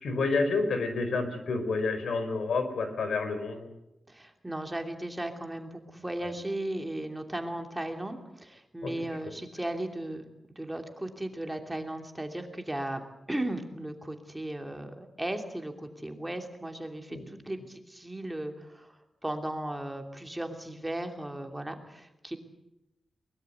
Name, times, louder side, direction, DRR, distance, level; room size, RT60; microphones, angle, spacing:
voice 1, 0.0-3.7 8.8-8.9 17.1-17.3, left 3 dB, 85° left, 8 dB, 4.7 m, -29 dB
voice 2, 4.1-10.3 10.6-13.0 13.3-18.9 19.2-22.4, right 1 dB, 10° right, 4 dB, 2.9 m, -36 dB
23.0 x 21.5 x 8.1 m, 0.87 s
wide cardioid pair, 135°, 0 cm